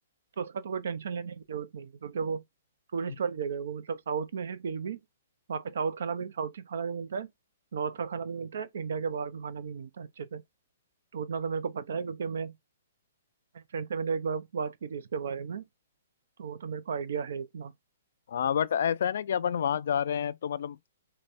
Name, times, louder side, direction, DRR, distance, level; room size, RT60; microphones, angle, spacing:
voice 1, 0.4-2.4 2.9-5.0 5.5-7.3 7.7-10.4 11.1-12.5 13.5-15.6 16.4-17.7, right 6 dB, 70° right, 0.7 m, -34 dB
voice 2, 18.3-20.8, left 8 dB, 65° left, 0.3 m, -28 dB
3.2 x 2.3 x 4.2 m
hypercardioid pair, 150°, 0 cm